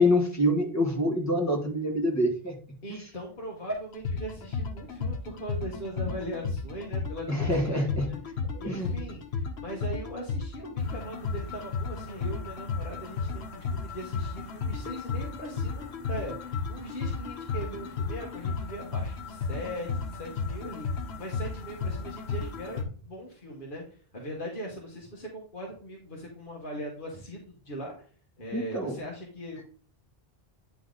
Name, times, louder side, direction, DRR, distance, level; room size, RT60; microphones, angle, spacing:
voice 1, 0.0-2.5 7.3-8.1 8.6-9.0 28.5-29.0, left 1 dB, 15° left, 0 dB, 1.7 m, -26 dB
voice 2, 2.8-8.2 8.6-27.9 28.4-29.7, equal, 55° left, -2 dB, 1.6 m, -40 dB
sound 1, 3.9-22.8, left 4 dB, 90° left, 1.3 m, -33 dB
9.7 x 3.5 x 3.9 m, 0.43 s
omnidirectional pair, 1.1 m